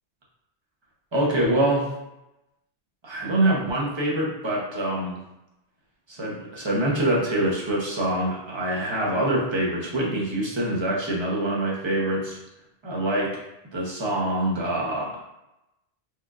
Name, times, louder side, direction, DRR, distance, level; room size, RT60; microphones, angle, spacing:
voice 1, 1.1-1.9 3.0-5.2 6.1-12.4 12.8-13.3 13.7-15.2, right 1 dB, 30° right, -4 dB, 0.8 m, -25 dB
4.6 x 2.5 x 2.4 m, 0.91 s
omnidirectional pair, 1.1 m